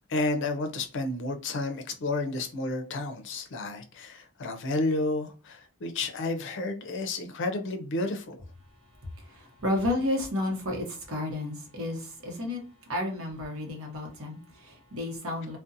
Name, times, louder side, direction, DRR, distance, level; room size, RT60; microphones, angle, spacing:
voice 1, 0.1-8.4, left 2 dB, 60° left, 0.5 m, -31 dB
voice 2, 9.1-12.6 12.9-15.6, left 1 dB, 75° right, 0.9 m, -32 dB
2.5 x 2.1 x 2.5 m
head